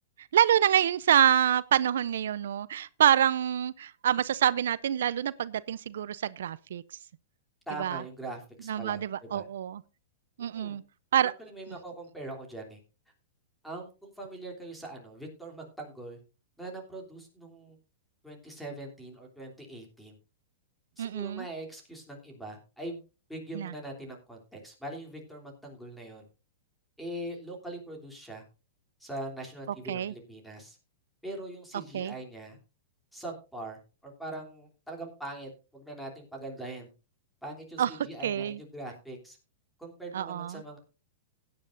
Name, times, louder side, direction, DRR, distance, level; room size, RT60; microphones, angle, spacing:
voice 1, 0.2-6.8 7.8-8.0 8.7-9.8 10.4-10.8 11.1-11.3 21.0-21.5 23.5-23.7 29.9-30.1 31.9-32.1 37.8-37.9 38.2-38.6 40.1-40.6, right 10 dB, 75° right, 0.5 m, -26 dB
voice 2, 7.7-9.5 10.4-10.8 11.4-12.8 13.1-13.2 13.6-16.2 16.6-17.8 18.2-20.2 21.0-23.0 23.3-26.3 27.0-28.4 29.0-30.8 31.2-32.6 33.1-36.9 37.4-39.4 39.8-40.8, right 1 dB, ahead, 3.3 m, -42 dB
17.0 x 9.6 x 2.6 m
supercardioid pair, 160°, 0 cm